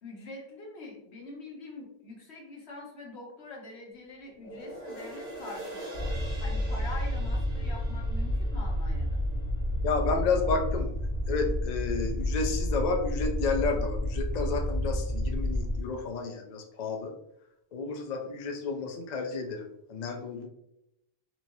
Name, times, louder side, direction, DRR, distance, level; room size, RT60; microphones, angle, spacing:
voice 1, 0.0-9.2, left 2 dB, 90° left, -2 dB, 1.4 m, -44 dB
sound 1, 4.3-10.9 11.4-11.5, right 1 dB, 85° right, 1.8 m, -44 dB
sound 2, 5.9-15.8, left 1 dB, 60° right, 1.1 m, -30 dB
voice 2, 9.8-10.9 11.3-17.1 17.7-20.5, left 4 dB, 50° left, 3 dB, 0.6 m, -31 dB
4.2 x 3.1 x 2.6 m, 0.80 s
omnidirectional pair, 1.1 m